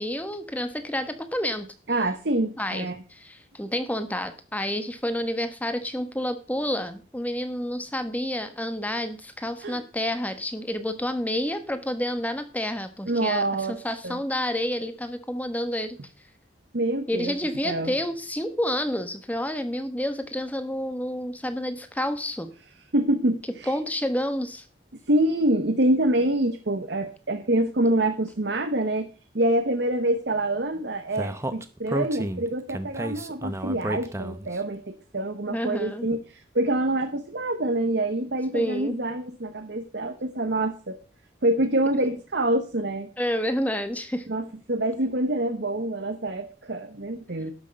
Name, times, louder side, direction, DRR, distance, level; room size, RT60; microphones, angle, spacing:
voice 1, 0.0-1.7 2.6-16.0 17.1-22.5 23.7-24.6 35.5-36.1 38.5-39.0 43.2-44.3, left 1 dB, 10° left, 9 dB, 1.1 m, -29 dB
voice 2, 1.9-3.0 9.6-9.8 13.1-13.8 14.0-14.2 16.7-17.3 17.6-17.9 22.9-23.7 25.1-29.1 29.3-41.0 41.4-43.1 44.3-47.5, right 1 dB, 60° right, 7 dB, 1.0 m, -26 dB
Speech, 31.2-34.6, right 1 dB, 15° right, 0.7 m, -31 dB
12.0 x 6.4 x 6.3 m, 0.37 s
head